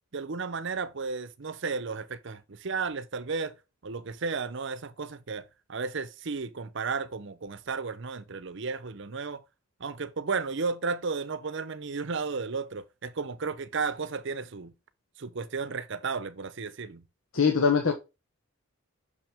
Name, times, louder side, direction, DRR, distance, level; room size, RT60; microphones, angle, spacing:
voice 1, 0.1-3.5 3.8-9.4 9.8-14.7 15.2-17.0, right 4 dB, 60° right, 0.7 m, -33 dB
voice 2, 17.3-17.9, left 5 dB, 90° left, 1.1 m, -22 dB
6.2 x 5.9 x 3.5 m
head